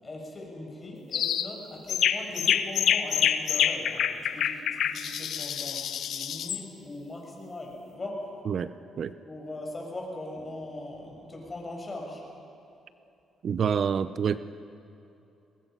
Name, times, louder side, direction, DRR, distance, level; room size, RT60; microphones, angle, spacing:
voice 1, 0.0-8.3 9.2-12.2, left 2 dB, 25° left, 0 dB, 6.0 m, -40 dB
sound 1, 1.1-1.5 1.9-6.6, left 9 dB, 70° left, 0.9 m, -27 dB
voice 2, 13.4-14.4, right 7 dB, 55° right, 14 dB, 0.6 m, -27 dB
22.0 x 21.0 x 5.7 m, 2.8 s
cardioid pair, 90°, 0 cm